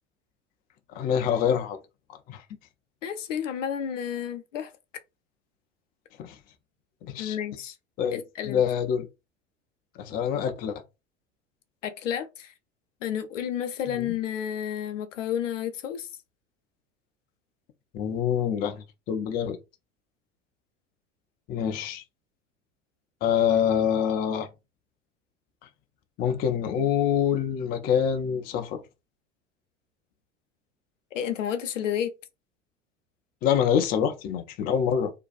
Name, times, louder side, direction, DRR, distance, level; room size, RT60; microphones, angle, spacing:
voice 1, 0.9-1.8 2.3-2.4 6.2-6.4 7.0-7.4 8.0-9.1 10.0-10.8 13.9-14.1 17.9-19.6 21.5-22.0 23.2-24.5 26.2-28.8 33.4-35.1, left 8 dB, 25° left, 0.4 m, -26 dB
voice 2, 3.0-4.7 7.2-7.8 8.1-8.6 11.8-12.5 13.0-16.1 31.1-32.1, left 9 dB, 75° left, 0.5 m, -31 dB
2.6 x 2.2 x 2.4 m
figure-of-eight pair, 75°, 38 cm